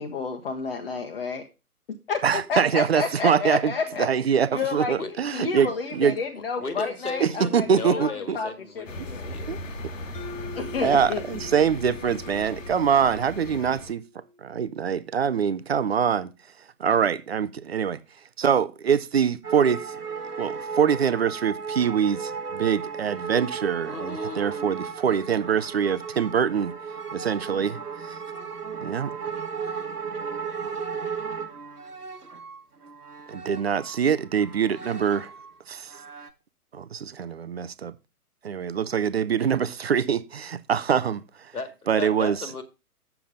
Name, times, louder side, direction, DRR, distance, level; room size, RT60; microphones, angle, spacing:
voice 1, 0.0-1.5 2.1-4.1 4.5-5.0 5.3-7.7 8.0-9.4 10.5-11.2, left 5 dB, 40° left, 1.2 m, -30 dB
voice 2, 2.2-3.7 4.0-6.2 7.2-8.4 9.5-9.6 10.8-14.0 14.4-16.3 16.8-18.0 18.4-19.9 20.4-26.7 27.1-28.2 28.8-29.1 33.3-35.3 35.7-35.9 36.7-37.9 38.4-41.5 41.9-42.4, right 7 dB, 45° right, 0.7 m, -24 dB
voice 3, 6.6-9.5 23.8-24.9 41.5-42.6, left 3 dB, 75° left, 2.1 m, -35 dB
sound 1, 8.9-13.9, left 1 dB, 55° left, 1.6 m, -38 dB
Mallet percussion, 10.1-14.7, left 1 dB, 10° left, 1.0 m, -44 dB
sound 2, 19.4-34.0 34.3-35.5 35.9-36.3, right 6 dB, 85° right, 1.4 m, -35 dB
8.3 x 7.0 x 5.2 m
figure-of-eight pair, 130°, 45 cm